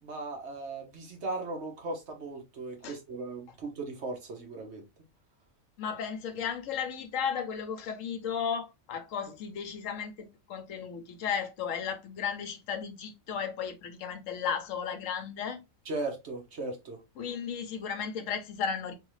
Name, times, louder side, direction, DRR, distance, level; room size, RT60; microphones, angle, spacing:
voice 1, 0.0-4.8 15.8-17.0, right 2 dB, 55° right, 1.3 m, -37 dB
voice 2, 5.8-10.1 10.5-15.6 17.2-18.9, left 7 dB, 70° left, 1.1 m, -34 dB
3.5 x 3.1 x 3.1 m
omnidirectional pair, 1.4 m